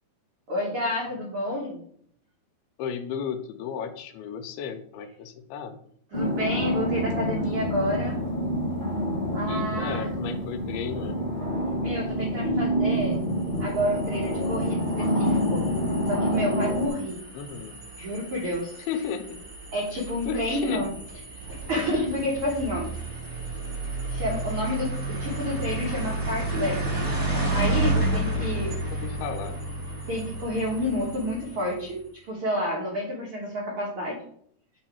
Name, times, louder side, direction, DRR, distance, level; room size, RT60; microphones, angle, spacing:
voice 1, 0.5-1.8 6.1-8.2 9.3-10.1 11.8-13.2 13.6-15.6 16.1-17.2 18.0-18.7 19.7-20.9 21.7-22.9 24.1-26.8 27.5-28.7 30.1-34.2, equal, 75° right, -3 dB, 1.2 m, -29 dB
voice 2, 2.8-5.8 9.5-11.2 17.3-17.8 18.8-19.4 20.0-20.9 28.6-29.7, left 7 dB, 90° left, 8 dB, 2.6 m, -34 dB
sound 1, 6.1-16.9, equal, 35° left, 0.7 m, -27 dB
sound 2, 13.4-31.9, right 2 dB, 15° right, 1.7 m, -32 dB
8.6 x 3.1 x 4.4 m, 0.64 s
omnidirectional pair, 4.5 m